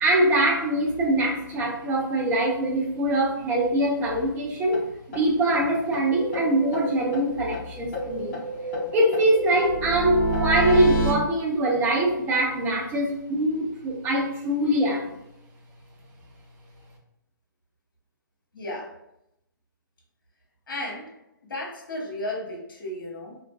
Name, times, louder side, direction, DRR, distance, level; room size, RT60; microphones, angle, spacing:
voice 1, 0.0-4.8 5.1-8.4 8.9-15.1, right 1 dB, 20° right, -2 dB, 0.6 m, -23 dB
sound 1, 4.7-4.8 5.1-5.2 5.5-5.6 5.9-6.0 6.3-7.6 7.9-11.1, right 1 dB, 40° left, 0.8 m, -28 dB
voice 2, 18.5-19.0 20.7-21.1 21.4-23.4, left 1 dB, 75° left, -1 dB, 1.0 m, -34 dB
2.4 x 2.3 x 2.2 m, 0.81 s
hypercardioid pair, 140°, 11 cm